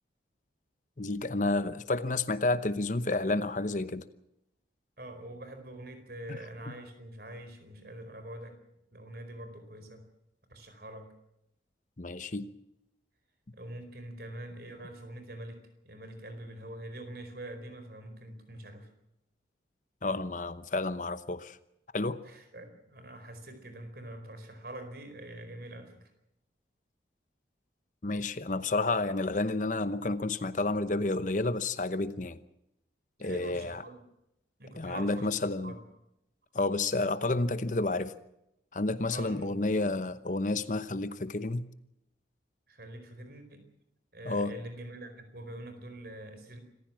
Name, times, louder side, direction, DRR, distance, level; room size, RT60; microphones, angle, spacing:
voice 1, 1.0-4.0 6.3-6.4 12.0-12.5 20.0-21.6 21.9-22.2 28.0-32.4 33.2-33.8 34.8-35.8 36.5-38.1 38.7-41.6 44.2-44.5, left 2 dB, 40° left, 0.9 m, -30 dB
voice 2, 5.0-8.6 8.9-10.0 10.5-11.1 13.5-18.9 22.2-26.1 33.2-34.0 34.6-35.3 35.6-35.8 39.1-39.6 42.7-43.6 44.1-46.6, right 1 dB, 55° right, 4.6 m, -44 dB
26.5 x 15.0 x 7.5 m
head